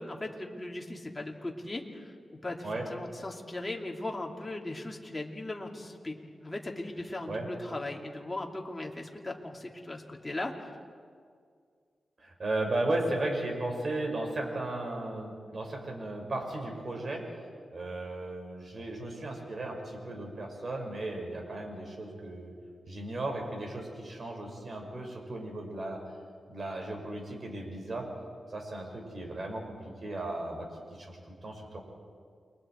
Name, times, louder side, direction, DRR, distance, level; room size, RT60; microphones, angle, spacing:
voice 1, 0.0-10.7, left 2 dB, 20° left, 0 dB, 2.7 m, -38 dB
voice 2, 12.2-17.4 17.7-22.5 22.9-26.0 26.5-28.1 28.5-31.8, right 2 dB, 50° right, 1 dB, 5.1 m, -35 dB
29.0 x 22.5 x 4.5 m, 2.1 s
cardioid pair, 70°, 0 cm